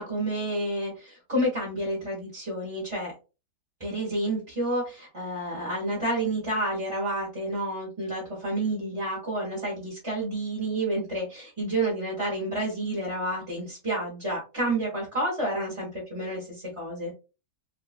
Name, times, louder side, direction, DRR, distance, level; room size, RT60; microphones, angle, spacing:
voice 1, 0.0-3.1 3.8-17.1, right 1 dB, 25° right, -5 dB, 0.7 m, -30 dB
2.8 x 2.4 x 2.4 m, 0.31 s
omnidirectional pair, 1.8 m